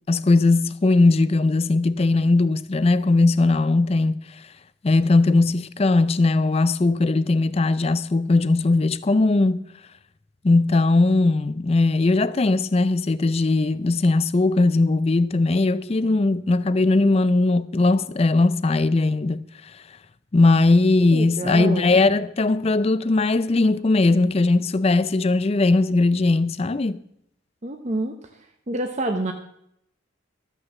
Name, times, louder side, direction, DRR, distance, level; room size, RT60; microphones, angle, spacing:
voice 1, 0.1-4.3 4.8-9.6 10.4-19.4 20.3-27.0, left 2 dB, 30° left, 0.4 m, -19 dB
voice 2, 21.1-22.0 27.6-28.1 28.7-29.3, right 2 dB, 35° right, 0.8 m, -27 dB
13.5 x 6.5 x 7.1 m
head